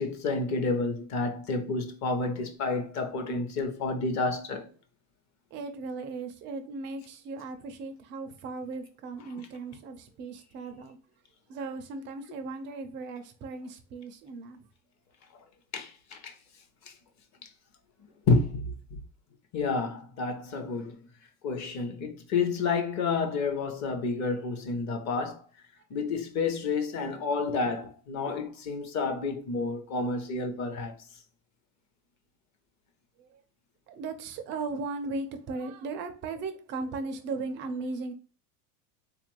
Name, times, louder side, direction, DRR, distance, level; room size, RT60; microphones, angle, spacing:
voice 1, 0.0-4.7 15.7-16.3 18.3-18.7 19.5-20.9 21.4-25.4 25.9-30.9, left 4 dB, 35° left, 0.8 m, -30 dB
voice 2, 5.5-11.0 11.5-14.6 33.2-33.3 33.9-38.1, right 3 dB, 25° right, 0.3 m, -37 dB
3.8 x 2.5 x 3.1 m
supercardioid pair, 125°, 49 cm